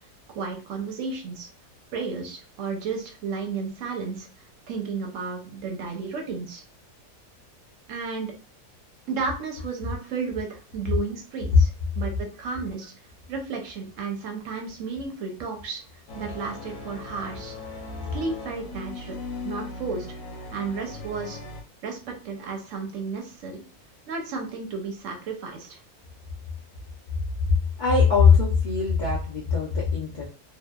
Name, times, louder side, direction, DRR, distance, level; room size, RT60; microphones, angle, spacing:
voice 1, 0.3-1.5 1.9-4.3 4.7-6.6 7.9-8.3 9.1-12.9 13.3-15.8 16.1-17.5 18.1-19.2 19.4-20.1 20.5-21.4 21.8-23.6 24.1-25.8, right 4 dB, 70° right, 2 dB, 0.9 m, -33 dB
sound 1, 16.1-21.6, left 3 dB, 65° left, 1.0 m, -38 dB
voice 2, 27.8-30.3, left 5 dB, 80° left, -4 dB, 0.4 m, -20 dB
2.7 x 2.2 x 2.2 m, 0.37 s
omnidirectional pair, 1.6 m